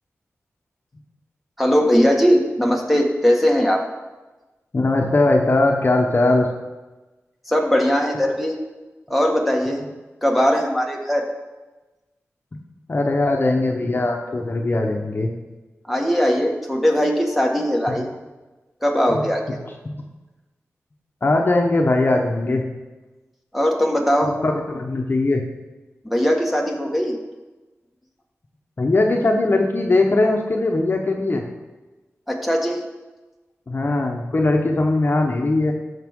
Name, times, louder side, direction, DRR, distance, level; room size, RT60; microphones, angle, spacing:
voice 1, 1.6-3.8 7.5-8.5 9.1-9.8 10.2-11.2 15.8-18.1 18.8-19.4 23.5-24.3 26.0-27.2 32.3-32.8, equal, ahead, 1 dB, 1.6 m, -19 dB
voice 2, 4.7-6.5 12.9-15.3 19.1-19.2 19.8-20.1 21.2-22.6 24.2-25.5 28.8-31.4 33.7-35.7, left 2 dB, 45° left, 2 dB, 1.0 m, -20 dB
14.0 x 5.7 x 3.7 m, 1.2 s
cardioid pair, 65°, 5 cm